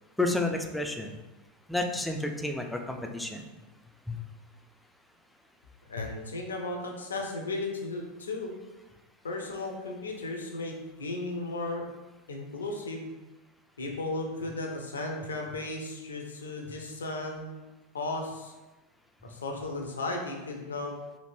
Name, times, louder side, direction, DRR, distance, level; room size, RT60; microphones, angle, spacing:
voice 1, 0.2-1.2 1.7-3.5 4.1-4.2, left 2 dB, 5° left, 3 dB, 0.4 m, -30 dB
voice 2, 5.9-8.5 9.2-11.8 12.3-13.1 13.8-17.4 17.9-18.5 19.2-20.9, left 2 dB, 85° left, 2 dB, 0.5 m, -35 dB
3.1 x 2.5 x 2.6 m, 1.1 s
hypercardioid pair, 90°, 0 cm